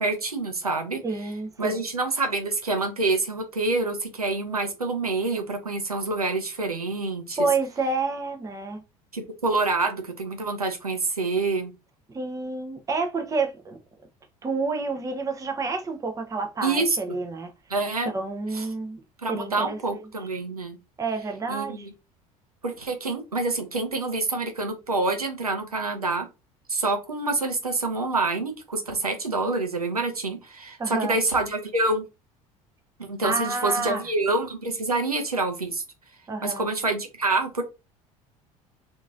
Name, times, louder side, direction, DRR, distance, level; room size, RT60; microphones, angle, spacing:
voice 1, 0.0-1.0 1.6-7.4 9.1-11.7 16.6-17.2 17.7-18.1 18.5-18.7 19.2-20.8 21.5-21.9 22.6-26.3 26.7-32.0 33.0-35.8 36.4-37.6, right 3 dB, 85° right, 0.6 m, -27 dB
voice 2, 1.0-1.8 7.4-8.8 12.1-13.8 14.4-17.5 18.1-19.0 19.3-19.8 21.0-21.9 30.8-31.2 33.2-34.0 36.3-36.7, right 3 dB, 15° right, 0.6 m, -29 dB
2.9 x 2.5 x 2.4 m
figure-of-eight pair, 65°, 19 cm